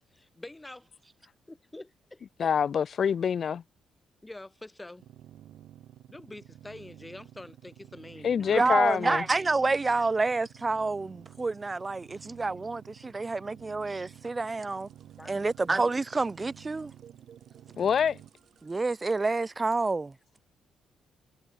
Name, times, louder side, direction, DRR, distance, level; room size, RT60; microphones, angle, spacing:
voice 1, 0.1-0.9 1.5-2.5 4.2-5.0 6.1-8.7 9.0-9.1 12.1-12.2 13.0-13.1 15.2-15.5, left 2 dB, 15° left, 7.9 m, -46 dB
voice 2, 2.4-3.6 8.2-9.2 17.8-18.2, left 7 dB, 50° left, 0.4 m, -26 dB
sound 1, 5.0-18.3, right 12 dB, 80° right, 6.8 m, -52 dB
voice 3, 8.5-14.9 15.3-16.9 18.6-20.1, right 3 dB, 25° right, 0.5 m, -28 dB
sound 2, 14.4-19.8, right 8 dB, 55° right, 5.3 m, -60 dB
cardioid pair, 90°, 0 cm